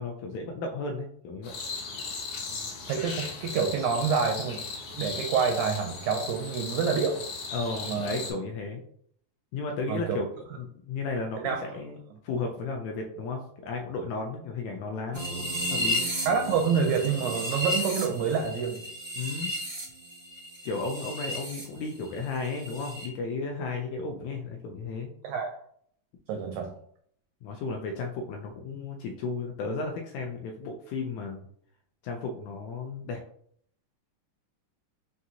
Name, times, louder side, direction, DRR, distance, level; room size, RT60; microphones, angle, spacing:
voice 1, 0.0-1.5 7.5-8.8 9.5-12.0 12.2-16.1 19.1-19.5 20.6-25.1 27.4-31.4 32.0-33.2, left 3 dB, 85° left, 2 dB, 1.6 m, -34 dB
sound 1, 1.4-8.3, left 4 dB, 65° left, 1.8 m, -37 dB
voice 2, 2.9-4.6 4.9-7.2 7.9-8.2 9.9-10.2 11.4-11.7 12.1-12.2 16.2-18.8 25.2-25.5 26.3-26.7, right 6 dB, 80° right, 3 dB, 1.7 m, -27 dB
sound 2, 15.1-21.6 21.9-23.1, equal, 50° right, 0.6 m, -33 dB
5.7 x 2.5 x 2.7 m, 0.65 s
omnidirectional pair, 3.8 m